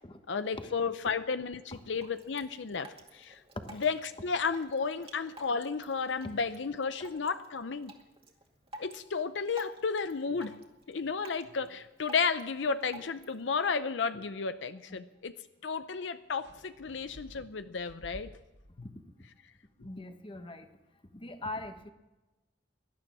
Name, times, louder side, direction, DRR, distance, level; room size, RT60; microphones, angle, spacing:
voice 1, 0.3-3.4 3.7-7.9 8.8-10.6 10.9-15.3 15.6-18.3, left 5 dB, 75° left, 12 dB, 0.6 m, -33 dB
Drip, 1.7-13.7, right 1 dB, 30° right, 2.1 m, -53 dB
sound 1, 16.4-18.7, equal, 75° right, 6.1 m, -52 dB
voice 2, 19.8-20.7 21.1-21.9, left 2 dB, 30° left, 8 dB, 1.2 m, -41 dB
18.5 x 12.0 x 6.1 m, 1.1 s
head